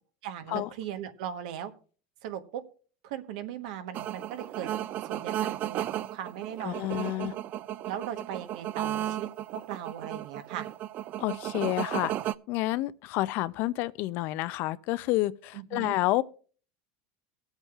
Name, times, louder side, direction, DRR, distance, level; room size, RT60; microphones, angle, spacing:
voice 1, 0.2-1.7 2.2-2.6 3.0-4.7 5.1-7.3 7.8-10.7 15.5-16.0, right 10 dB, 75° right, 1.1 m, -38 dB
sound 1, 3.9-12.3, right 12 dB, 45° right, 0.4 m, -34 dB
voice 2, 6.6-7.3 11.2-12.1 12.5-16.2, left 17 dB, 60° left, 0.5 m, -29 dB
23.0 x 8.0 x 2.4 m
supercardioid pair, 110°, 4 cm